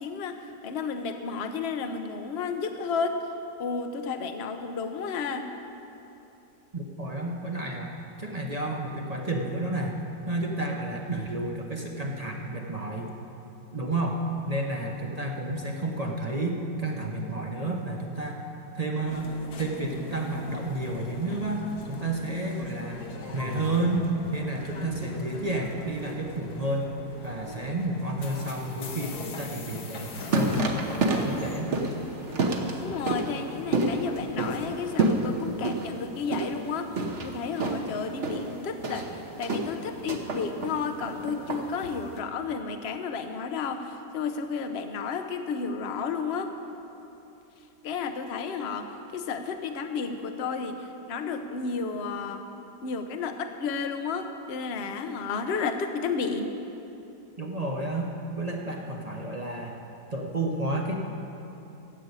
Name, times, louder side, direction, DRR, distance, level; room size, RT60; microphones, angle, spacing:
voice 1, 0.0-3.2 3.6-5.5 32.8-36.9 37.2-39.1 39.4-46.5 47.8-52.4 52.8-56.5, left 5 dB, 50° left, 7 dB, 0.9 m, -32 dB
voice 2, 6.7-9.9 10.3-13.1 13.7-18.4 18.7-23.1 23.3-24.1 24.3-26.9 27.2-30.6 31.0-31.7 57.4-58.1 58.4-59.8 60.1-61.0, right 2 dB, 25° right, 0 dB, 0.9 m, -31 dB
sound 1, 19.0-34.8, left 4 dB, 65° left, 1.6 m, -40 dB
sound 2, 29.9-42.2, right 2 dB, 45° right, 1.3 m, -30 dB
14.0 x 8.5 x 8.2 m, 2.9 s
omnidirectional pair, 1.9 m